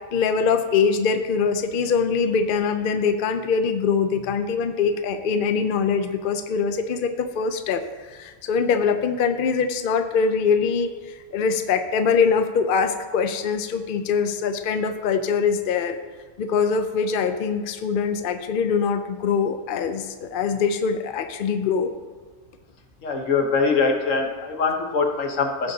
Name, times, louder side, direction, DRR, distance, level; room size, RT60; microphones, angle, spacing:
voice 1, 0.1-7.8 8.1-10.9 11.3-16.0 16.4-21.9, left 5 dB, 55° left, 8 dB, 0.6 m, -23 dB
voice 2, 23.0-25.7, left 4 dB, 80° left, 3 dB, 1.4 m, -23 dB
16.0 x 6.6 x 2.8 m, 1.3 s
omnidirectional pair, 1.3 m